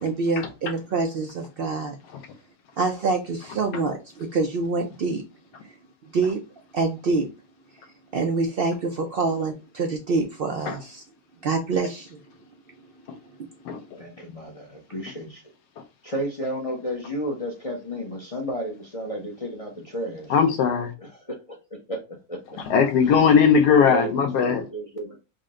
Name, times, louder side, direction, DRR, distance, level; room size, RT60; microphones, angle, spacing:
voice 1, 0.0-1.9 2.8-5.2 6.1-6.4 6.7-7.3 8.1-11.0 11.4-12.2, right 3 dB, 85° right, 0.5 m, -26 dB
voice 2, 14.0-15.4 16.0-20.3 21.0-22.6 23.7-25.2, right 1 dB, 35° left, 0.5 m, -33 dB
voice 3, 20.3-20.9 22.7-24.6, left 6 dB, 90° left, 1.3 m, -19 dB
4.0 x 2.1 x 3.6 m
omnidirectional pair, 1.7 m